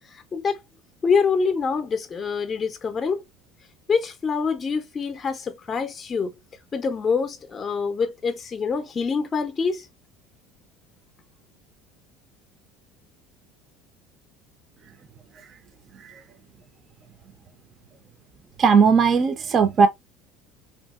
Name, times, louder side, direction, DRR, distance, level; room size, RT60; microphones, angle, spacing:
voice 1, 0.1-0.6 1.0-3.2 3.9-6.3 6.7-9.9, left 5 dB, 25° left, 0.4 m, -25 dB
voice 2, 18.6-19.9, right 5 dB, 35° right, 0.4 m, -17 dB
2.7 x 2.7 x 2.3 m
supercardioid pair, 115°, 0 cm